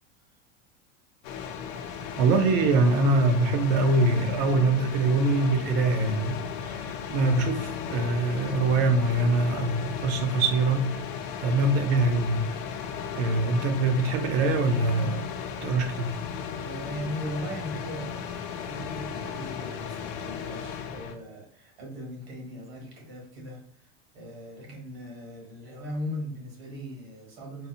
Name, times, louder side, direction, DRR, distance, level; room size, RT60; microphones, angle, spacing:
sound 1, 1.2-21.1, left 7 dB, 55° left, 0.5 m, -36 dB
voice 1, 2.2-6.8 7.1-11.0 11.4-12.4 13.2-15.3 15.6-16.1, right 2 dB, 45° right, 0.5 m, -24 dB
voice 2, 16.6-27.7, equal, 65° right, 1.4 m, -39 dB
3.9 x 2.1 x 2.6 m
supercardioid pair, 160°, 32 cm